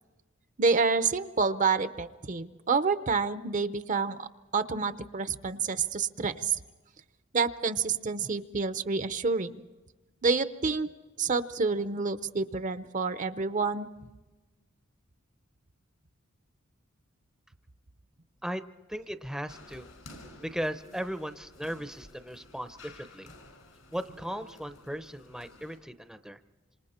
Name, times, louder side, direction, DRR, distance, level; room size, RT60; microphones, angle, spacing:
voice 1, 0.6-4.3 4.5-6.6 7.3-9.5 10.2-10.9 11.2-13.9, right 4 dB, 40° right, 12 dB, 0.7 m, -28 dB
voice 2, 18.9-19.9 20.4-23.3 23.9-26.4, equal, 5° right, 9 dB, 0.7 m, -37 dB
sound 1, 19.5-25.8, left 2 dB, 80° left, 5.3 m, -52 dB
27.0 x 26.5 x 4.4 m, 1.2 s
head